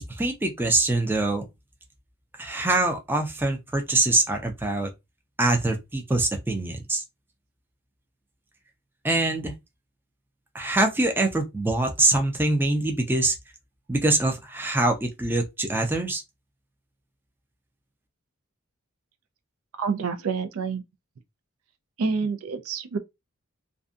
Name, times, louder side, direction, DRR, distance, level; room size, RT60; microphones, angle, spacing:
voice 1, 0.1-1.4 2.4-4.9 5.4-7.0 9.0-9.5 10.5-13.3 13.9-16.2, right 2 dB, 10° right, 0.4 m, -24 dB
voice 2, 19.8-20.8 22.0-23.0, right 5 dB, 85° right, 0.4 m, -28 dB
2.6 x 2.2 x 2.4 m
head